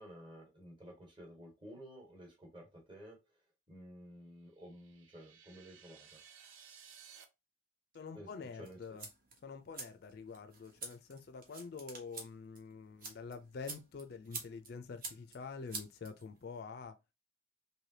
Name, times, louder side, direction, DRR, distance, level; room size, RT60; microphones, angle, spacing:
voice 1, 0.0-6.2 8.1-8.8, equal, 25° right, 1.3 m, -53 dB
sound 1, 4.5-7.2, right 7 dB, 75° right, 0.6 m, -58 dB
voice 2, 7.9-9.0 9.4-17.0, left 5 dB, 50° left, 0.3 m, -47 dB
sound 2, 8.6-16.6, right 4 dB, 45° right, 0.9 m, -49 dB
3.2 x 2.7 x 2.7 m
head